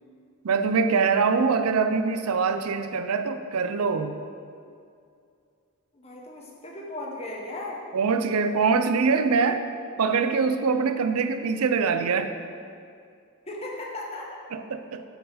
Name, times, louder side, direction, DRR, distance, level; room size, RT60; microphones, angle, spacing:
voice 1, 0.4-4.2 7.9-9.6 10.0-12.3 14.5-15.0, right 5 dB, 90° right, 9 dB, 0.5 m, -23 dB
voice 2, 5.9-7.8 13.5-14.4, left 2 dB, 30° left, -1 dB, 1.0 m, -36 dB
9.1 x 4.7 x 5.0 m, 2.4 s
head